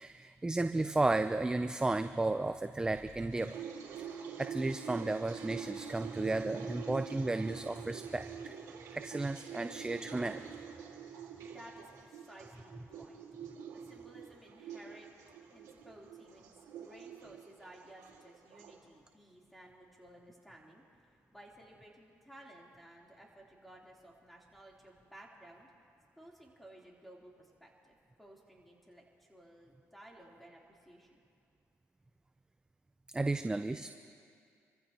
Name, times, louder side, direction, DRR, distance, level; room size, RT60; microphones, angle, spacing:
voice 1, 0.0-3.6 4.0-4.1 4.4-8.6 8.9-10.6 33.1-33.9, right 2 dB, 15° right, 9 dB, 0.5 m, -33 dB
sound 1, 3.1-18.8, right 7 dB, 85° right, 2.1 m, -46 dB
voice 2, 11.4-13.2 13.7-15.1 15.5-16.5 16.8-25.7 26.2-31.2, right 1 dB, ahead, -3 dB, 3.4 m, -56 dB
27.0 x 14.5 x 2.9 m, 2.4 s
cardioid pair, 80°, 5 cm